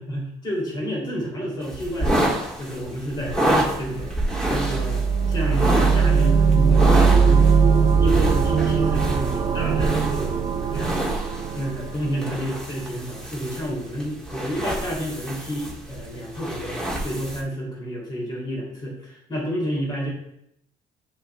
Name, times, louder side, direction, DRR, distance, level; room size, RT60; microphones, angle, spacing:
voice 1, 0.0-4.1 4.5-5.0 5.3-7.6 8.0-11.1 11.5-20.1, equal, 30° left, -3 dB, 2.6 m, -30 dB
sound 1, 1.6-17.4, right 1 dB, 5° left, 1.6 m, -28 dB
sound 2, 3.8-12.6, right 5 dB, 35° right, 0.6 m, -20 dB
9.9 x 6.8 x 2.2 m, 0.76 s
cardioid pair, 135°, 15 cm